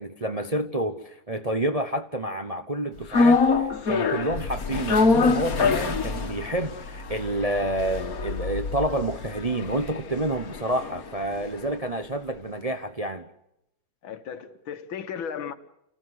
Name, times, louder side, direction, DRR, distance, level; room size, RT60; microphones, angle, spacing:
voice 1, 0.0-13.2, right 1 dB, 30° right, 0.8 m, -29 dB
sound 1, 3.1-11.4 11.7-11.8, left 4 dB, 50° left, 1.8 m, -25 dB
voice 2, 14.0-15.5, left 7 dB, 80° left, 2.2 m, -35 dB
30.0 x 15.5 x 8.2 m
omnidirectional pair, 2.2 m